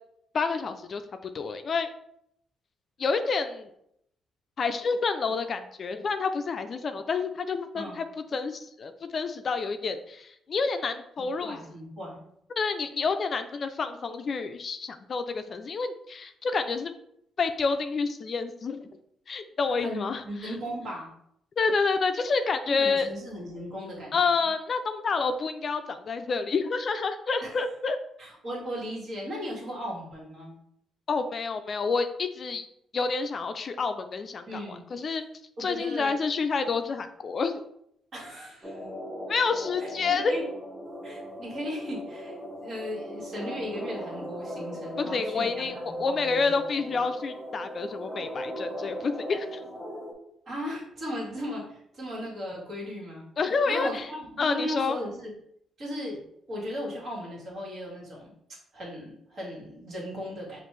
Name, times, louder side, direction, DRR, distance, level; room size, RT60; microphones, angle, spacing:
voice 1, 0.3-1.9 3.0-3.7 4.6-8.0 8.3-11.6 12.6-16.9 17.4-18.9 19.3-20.5 21.6-23.1 24.1-28.0 31.1-32.7 32.9-35.3 35.6-37.6 39.3-40.3 45.0-49.6 53.4-54.1 54.4-55.0, left 4 dB, 45° left, 9 dB, 0.3 m, -28 dB
voice 2, 11.2-12.2 19.8-21.1 22.7-24.5 27.4-27.5 28.2-30.5 34.5-34.8 35.6-36.1 38.1-38.8 39.8-40.4 41.0-46.6 50.4-53.2 53.7-55.3 55.8-56.2 56.5-58.3 58.7-60.6, equal, 55° right, -3 dB, 1.7 m, -37 dB
sound 1, 38.6-50.1, equal, ahead, 1.0 m, -38 dB
5.2 x 2.4 x 3.2 m, 0.74 s
cardioid pair, 90°, 0 cm